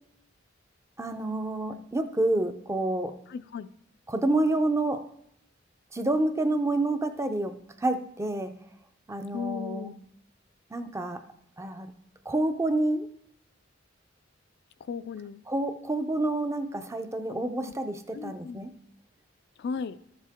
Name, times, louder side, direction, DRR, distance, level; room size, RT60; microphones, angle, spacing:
voice 1, 1.0-3.1 4.1-5.0 5.9-7.5 7.8-8.5 9.1-9.9 10.7-11.2 11.6-11.9 12.3-13.1 15.5-18.7, right 2 dB, 15° right, 8 dB, 0.5 m, -28 dB
voice 2, 3.3-3.7 9.3-10.0 14.8-15.4 18.1-18.6 19.6-20.0, left 5 dB, 60° left, 13 dB, 0.3 m, -36 dB
13.0 x 7.4 x 3.5 m, 0.75 s
head